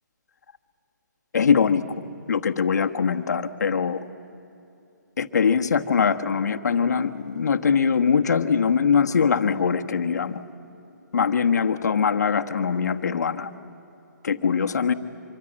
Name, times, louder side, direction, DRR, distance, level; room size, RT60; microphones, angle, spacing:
voice 1, 1.3-1.8 2.3-4.0 5.2-10.4 11.1-13.5 14.2-14.9, left 6 dB, 60° left, 7 dB, 1.3 m, -22 dB
25.0 x 24.0 x 8.8 m, 2.8 s
hypercardioid pair, 170°, 10 cm